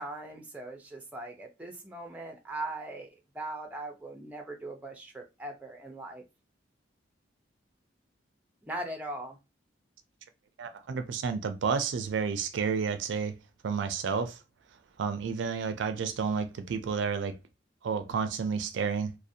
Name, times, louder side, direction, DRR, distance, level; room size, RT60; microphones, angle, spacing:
voice 1, 0.0-6.2 8.6-9.4, right 2 dB, 10° right, 0.4 m, -40 dB
voice 2, 10.6-13.3 13.6-14.4 15.0-17.4 17.8-19.2, right 6 dB, 75° right, 0.3 m, -31 dB
2.4 x 2.0 x 2.6 m
head